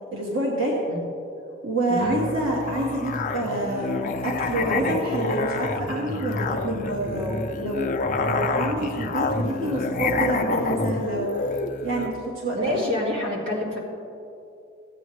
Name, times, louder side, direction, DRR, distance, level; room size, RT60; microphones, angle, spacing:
voice 1, 0.1-0.8 1.6-11.3 11.8-12.9, right 1 dB, 80° right, -4 dB, 1.6 m, -27 dB
Musical instrument, 2.0-12.2, left 3 dB, 40° left, 0.5 m, -28 dB
voice 2, 12.5-13.8, left 1 dB, 65° right, -3 dB, 2.0 m, -27 dB
15.5 x 8.8 x 3.2 m, 2.6 s
head